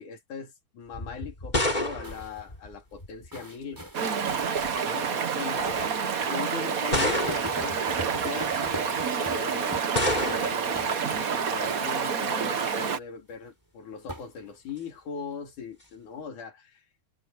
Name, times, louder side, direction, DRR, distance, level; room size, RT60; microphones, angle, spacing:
voice 1, 0.0-3.9 4.8-9.8 10.2-16.8, left 6 dB, 75° left, 4.5 m, -40 dB
sound 1, 0.9-3.3 4.3-4.8 5.6-5.7 6.9-7.7 9.9-10.7, left 1 dB, 15° left, 3.0 m, -29 dB
sound 2, 1.6-2.4 3.3-4.6 5.0-5.1 5.7-6.4 6.6-6.7 7.3-10.4 10.7-11.3 11.6-12.0 14.1-14.7, right 1 dB, 5° right, 5.6 m, -40 dB
Stream, 3.9-13.0, right 6 dB, 80° right, 0.8 m, -28 dB
omnidirectional pair, 3.6 m